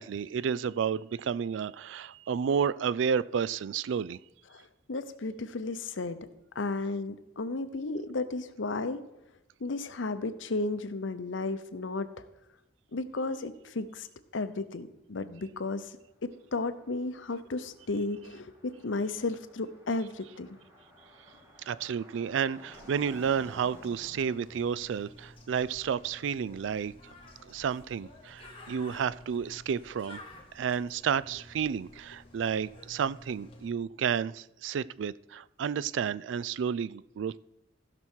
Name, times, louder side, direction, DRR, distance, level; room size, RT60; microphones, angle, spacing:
voice 1, 0.0-4.2 21.7-26.9 27.4-30.2 30.5-37.4, right 7 dB, 70° right, 19 dB, 0.3 m, -31 dB
voice 2, 4.9-6.2 6.5-9.0 9.6-12.1 12.9-14.1 14.3-15.9 16.2-20.5, left 3 dB, 80° left, 12 dB, 0.8 m, -33 dB
Car passing by, 16.0-27.9, equal, 15° right, 2.1 m, -56 dB
Bird, 22.7-33.7, left 1 dB, 30° left, 2.1 m, -52 dB
15.5 x 6.1 x 4.5 m, 0.94 s
head